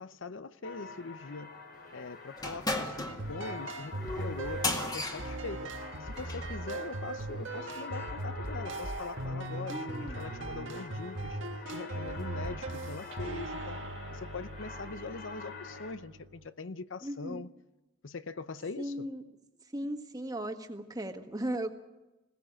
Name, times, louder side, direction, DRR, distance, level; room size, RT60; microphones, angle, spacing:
voice 1, 0.0-1.5 1.9-5.7 6.0-11.4 11.7-13.8 14.1-17.5 18.0-19.1, left 4 dB, 75° left, 0.7 m, -42 dB
sound 1, 0.6-15.9, left 4 dB, 55° left, 2.4 m, -46 dB
sound 2, 2.4-6.5, left 2 dB, 20° left, 1.9 m, -36 dB
sound 3, 3.1-16.5, right 2 dB, 75° right, 1.5 m, -39 dB
voice 2, 9.7-10.1 17.0-17.4 18.8-19.2 19.7-21.7, right 1 dB, 20° right, 1.7 m, -36 dB
21.0 x 17.5 x 8.8 m
head